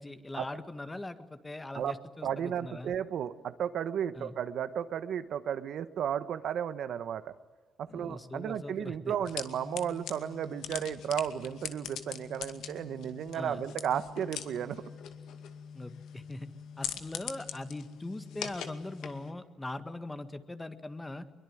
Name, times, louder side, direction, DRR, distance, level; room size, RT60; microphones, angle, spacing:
voice 1, 0.0-2.9 4.2-4.4 7.9-9.1 13.3-13.6 15.7-16.5 16.8-21.3, left 2 dB, 15° left, 10 dB, 1.9 m, -41 dB
voice 2, 2.2-7.3 7.8-14.8, right 9 dB, 70° right, 12 dB, 1.2 m, -34 dB
sound 1, 9.2-19.3, left 8 dB, 85° left, 2.3 m, -42 dB
22.5 x 22.5 x 9.3 m, 1.3 s
cardioid pair, 100°, 0 cm